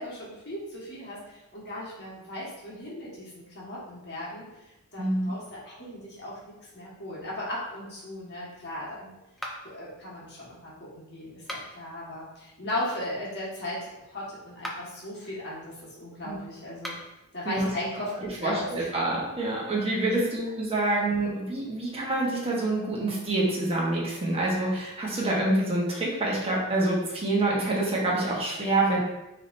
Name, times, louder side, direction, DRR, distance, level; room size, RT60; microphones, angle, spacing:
voice 1, 0.0-4.5 4.9-6.4 6.7-9.1 9.6-16.9 17.3-18.1 18.4-18.9, left 1 dB, 55° left, -6 dB, 1.5 m, -37 dB
voice 2, 5.0-5.3 16.2-16.4 17.4-17.7 18.4-29.0, right 2 dB, 25° right, -4 dB, 1.1 m, -26 dB
sound 1, 9.4-9.9 11.3-11.9 14.5-15.0 16.7-17.2, equal, ahead, 0.5 m, -39 dB
4.8 x 3.3 x 2.6 m, 0.95 s
head